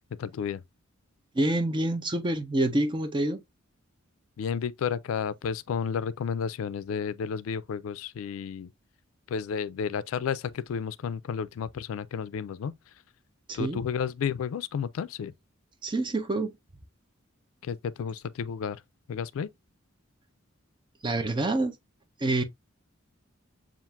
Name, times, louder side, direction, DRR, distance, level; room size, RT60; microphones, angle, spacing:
voice 1, 0.2-0.6 4.4-8.7 9.3-12.9 13.5-15.3 17.6-18.8 19.1-19.5, left 7 dB, 85° left, 0.3 m, -32 dB
voice 2, 1.3-3.4 13.5-13.8 15.8-16.5 21.0-21.7 22.2-22.4, right 2 dB, 25° right, 0.6 m, -27 dB
7.1 x 2.5 x 2.3 m
head